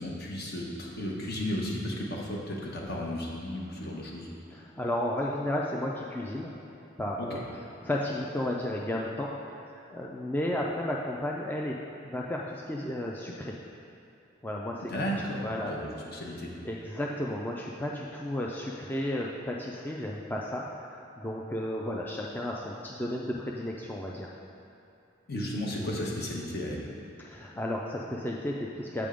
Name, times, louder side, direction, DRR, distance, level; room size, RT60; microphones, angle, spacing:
voice 1, 0.0-4.3 7.2-7.4 14.9-16.5 25.3-26.9, left 1 dB, 55° left, -2 dB, 1.0 m, -34 dB
voice 2, 4.5-6.6 7.0-7.4 7.8-9.3 9.6-11.8 12.0-13.6 14.4-14.9 15.4-15.7 16.6-24.3 27.2-29.1, left 1 dB, 10° left, -2 dB, 0.3 m, -33 dB
7.6 x 3.5 x 5.0 m, 2.8 s
head